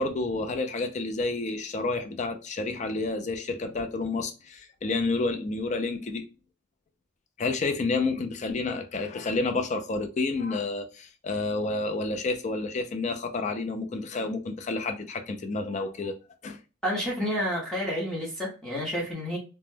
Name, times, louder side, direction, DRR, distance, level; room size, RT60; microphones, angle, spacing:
voice 1, 0.0-6.3 7.4-16.2 16.4-16.6, left 3 dB, 35° left, 0.3 m, -30 dB
voice 2, 16.8-19.4, equal, 5° left, 0.6 m, -30 dB
2.1 x 2.1 x 3.1 m
head